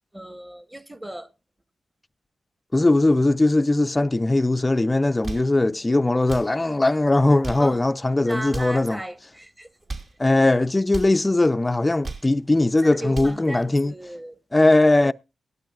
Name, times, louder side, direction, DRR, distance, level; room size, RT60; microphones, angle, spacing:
voice 1, 0.1-1.3 7.6-7.8 8.2-9.7 12.8-14.4 15.0-15.1, right 1 dB, 15° right, 1.2 m, -35 dB
voice 2, 2.7-9.0 10.2-13.9 14.5-15.1, left 2 dB, 20° left, 0.5 m, -20 dB
sound 1, 5.0-5.5 6.2-6.5 7.2-7.7 8.4-8.8 9.7-10.2 10.9-11.2 11.8-12.3 12.9-13.4, right 3 dB, 55° right, 3.0 m, -35 dB
17.5 x 12.0 x 2.4 m
cardioid pair, 55°, 0 cm